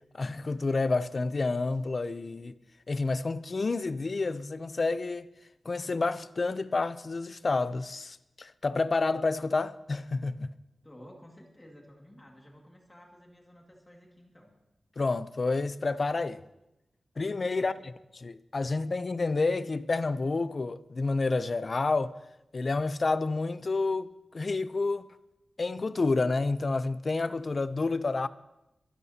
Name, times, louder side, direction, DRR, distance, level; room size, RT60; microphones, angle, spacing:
voice 1, 0.1-2.5 2.9-5.3 5.7-10.5 15.0-16.4 17.2-17.9 18.2-22.2 22.5-25.1 25.6-28.3, left 3 dB, 40° left, 0.5 m, -29 dB
voice 2, 10.8-14.5 17.5-17.9, equal, 15° left, 2.0 m, -53 dB
23.0 x 13.5 x 2.8 m
wide cardioid pair, 160°, 0 cm